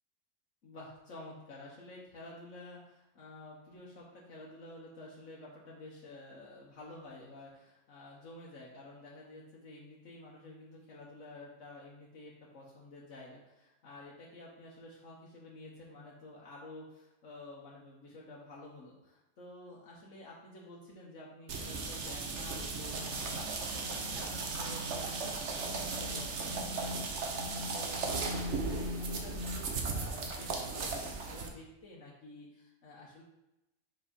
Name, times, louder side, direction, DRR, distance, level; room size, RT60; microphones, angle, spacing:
voice 1, 0.6-33.2, left 2 dB, 65° left, -5 dB, 1.4 m, -51 dB
sound 1, 21.5-31.5, right 3 dB, 60° right, 1.1 m, -36 dB
5.7 x 5.0 x 5.1 m, 0.95 s
omnidirectional pair, 1.4 m